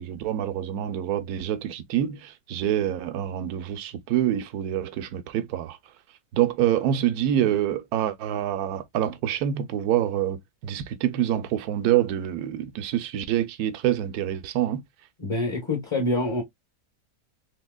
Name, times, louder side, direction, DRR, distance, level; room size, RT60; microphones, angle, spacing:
voice 1, 0.0-5.8 6.3-14.8, right 11 dB, 75° right, 1.1 m, -26 dB
voice 2, 15.2-16.4, left 2 dB, 20° left, 0.9 m, -26 dB
3.5 x 2.8 x 2.2 m
omnidirectional pair, 1.6 m